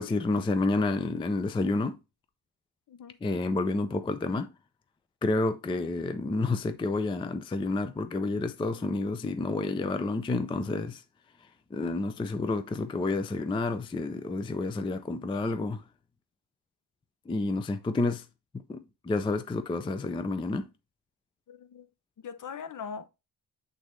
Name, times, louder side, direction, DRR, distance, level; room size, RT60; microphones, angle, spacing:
voice 1, 0.0-2.0 3.2-4.5 5.2-11.0 11.7-15.8 17.3-18.3 18.7-20.7, left 3 dB, 15° left, 0.4 m, -29 dB
voice 2, 21.5-21.9 22.2-23.1, left 6 dB, 45° left, 0.7 m, -41 dB
8.0 x 4.0 x 3.1 m
wide cardioid pair, 160°, 42 cm